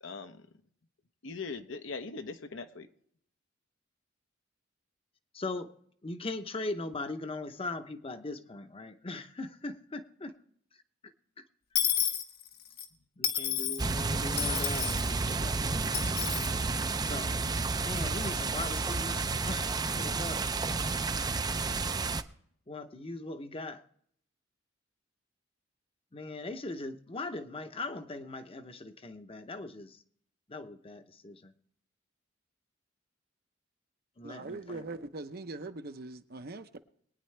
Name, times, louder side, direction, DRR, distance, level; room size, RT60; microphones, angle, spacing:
voice 1, 0.0-0.5 1.2-2.9, left 4 dB, 70° left, 0.9 m, -40 dB
voice 2, 5.3-5.8 6.0-10.3 13.2-15.6 17.0-17.3 17.8-19.7 20.0-20.4 22.7-23.8 26.1-30.0 30.5-31.5 34.2-34.8, left 2 dB, 30° left, 0.8 m, -40 dB
Dishes pots and pans / Coin (dropping), 11.7-12.9 13.2-13.8 14.4-15.1 15.9-16.5, left 9 dB, 55° left, 1.2 m, -31 dB
sound 1, 13.8-22.2, right 3 dB, 20° right, 0.5 m, -31 dB
voice 3, 34.2-36.8, right 2 dB, 50° right, 0.7 m, -41 dB
22.5 x 9.6 x 3.3 m
head